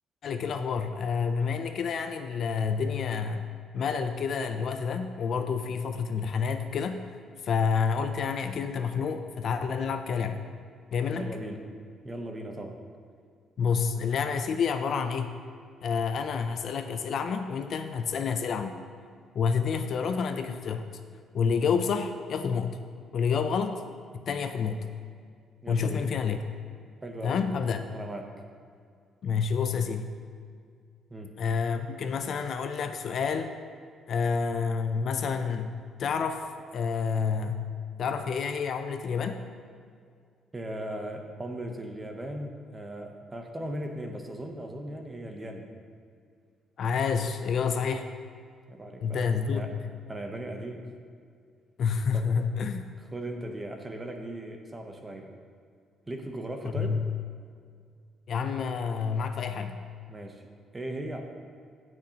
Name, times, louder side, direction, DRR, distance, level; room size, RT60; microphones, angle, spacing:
voice 1, 0.2-3.4 3.7-7.0 7.4-10.4 10.9-11.3 13.6-15.4 15.8-18.7 19.3-20.9 21.3-22.8 23.1-23.8 24.2-24.8 25.7-26.5 27.2-27.8 29.2-30.2 31.4-33.6 34.1-36.4 36.7-37.7 38.0-39.4 46.8-48.1 49.0-49.7 51.8-52.8 56.6-57.1 58.3-59.8, left 6 dB, 45° left, 7 dB, 0.4 m, -29 dB
voice 2, 11.1-11.6 12.0-12.8 25.6-26.1 27.0-27.6 27.9-28.3 31.1-31.3 40.5-45.7 48.7-49.8 50.1-50.9 52.1-52.4 53.1-55.3 56.1-57.0 60.1-61.2, right 1 dB, 15° right, 4 dB, 0.7 m, -38 dB
17.0 x 6.1 x 2.9 m, 2.2 s
cardioid pair, 180°, 0 cm